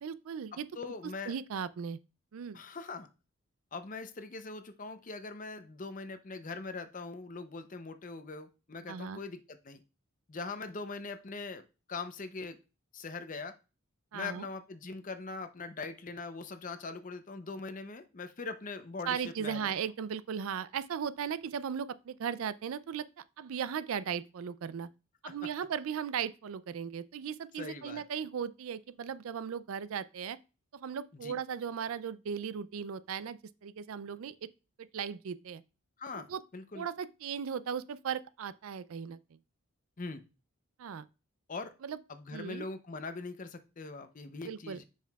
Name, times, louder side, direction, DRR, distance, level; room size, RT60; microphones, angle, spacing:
voice 1, 0.0-0.7 1.3-2.0 2.3-2.6 8.9-9.2 14.1-14.5 19.1-24.9 25.2-30.4 30.7-34.5 34.8-35.6 36.1-36.4 36.7-39.2 40.8-41.1 41.8-42.0 42.3-42.7 44.5-44.8, right 7 dB, 75° right, 0.4 m, -37 dB
voice 2, 0.5-1.3 2.5-3.1 3.7-9.8 10.3-12.6 12.9-13.6 14.1-19.7 25.2-25.4 27.6-28.0 31.1-31.4 36.0-36.9 40.0-40.2 41.5-41.7 42.1-44.8, left 3 dB, 35° left, 0.6 m, -42 dB
7.3 x 5.7 x 2.3 m
head